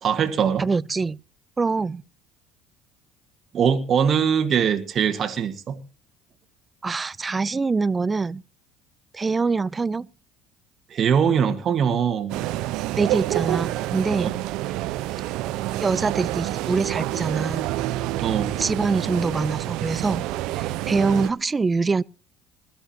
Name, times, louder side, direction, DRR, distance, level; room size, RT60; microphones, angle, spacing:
voice 1, 0.0-0.6 3.5-5.8 10.9-12.4 14.2-14.3 18.2-18.6, right 7 dB, 45° right, 1.8 m, -22 dB
voice 2, 0.6-1.2 1.6-2.0 6.8-8.4 9.1-10.1 13.0-14.3 15.8-17.7 18.6-20.3 20.5-22.0, right 4 dB, 25° right, 0.6 m, -24 dB
sound 1, 12.3-21.3, right 15 dB, 70° right, 1.0 m, -28 dB
21.0 x 12.5 x 3.0 m
hypercardioid pair, 70°, 0 cm